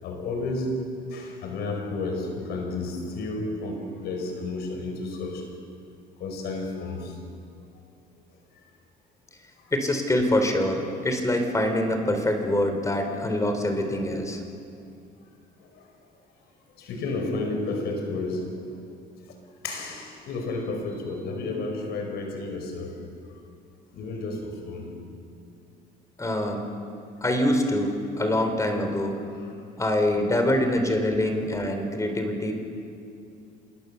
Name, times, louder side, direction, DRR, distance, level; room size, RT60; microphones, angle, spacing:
voice 1, 0.0-5.5 6.2-7.2 15.7-15.8 16.8-18.8 19.6-23.1 23.9-25.1 29.3-29.5, left 2 dB, 75° left, 4 dB, 5.3 m, -32 dB
voice 2, 9.7-14.4 26.2-26.7 27.2-29.2 29.8-32.5, left 1 dB, 20° left, 5 dB, 3.8 m, -25 dB
27.0 x 21.0 x 7.0 m, 2.4 s
cardioid pair, 110°, 17 cm